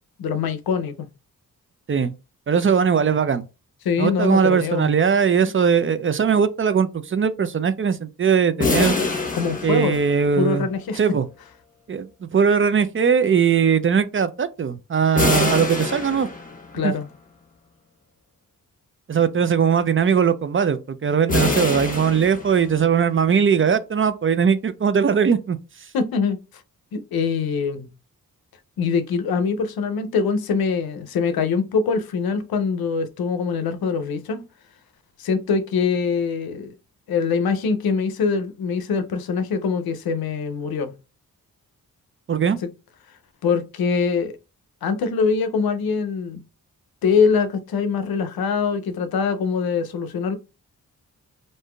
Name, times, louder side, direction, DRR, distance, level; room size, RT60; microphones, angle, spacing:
voice 1, 0.2-1.1 3.8-4.9 9.3-10.0 10.4-11.0 16.7-17.1 25.9-26.4 26.9-27.9 28.8-34.4 35.2-36.7 37.1-40.9 42.6-42.7 43.4-44.3 44.8-46.4 47.0-50.4, left 5 dB, 90° left, 0.6 m, -23 dB
voice 2, 2.5-3.5 4.0-9.0 9.6-10.7 11.0-11.3 11.9-16.3 16.8-16.9 19.1-25.6 42.3-42.6, right 7 dB, 35° right, 0.4 m, -20 dB
sound 1, 8.6-10.5 15.2-16.8 21.3-22.9, left 3 dB, 20° left, 1.0 m, -25 dB
3.5 x 2.6 x 2.2 m
cardioid pair, 65°, 36 cm